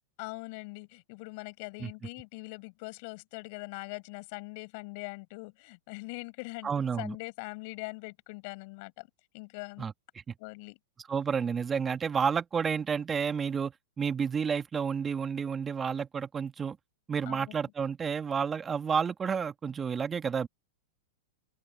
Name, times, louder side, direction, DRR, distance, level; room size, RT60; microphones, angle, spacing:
voice 1, 0.2-9.1 9.3-9.9 10.4-10.8 17.2-17.5, left 29 dB, 55° left, 4.8 m, -42 dB
voice 2, 6.6-7.1 9.8-9.9 11.1-16.8 17.1-20.5, right 6 dB, 20° right, 1.7 m, -30 dB
hypercardioid pair, 115°, 0 cm